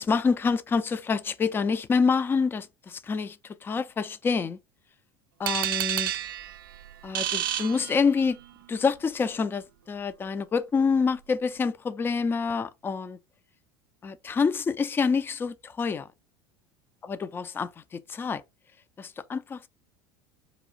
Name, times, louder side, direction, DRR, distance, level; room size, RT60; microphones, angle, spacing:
voice 1, 0.0-4.6 5.4-6.1 7.0-8.4 8.7-13.2 14.0-16.1 17.0-18.4 19.0-19.7, left 5 dB, 20° left, 0.4 m, -27 dB
sound 1, 5.5-8.5, right 12 dB, 65° right, 0.4 m, -30 dB
4.2 x 2.4 x 3.8 m
figure-of-eight pair, 75°, 12 cm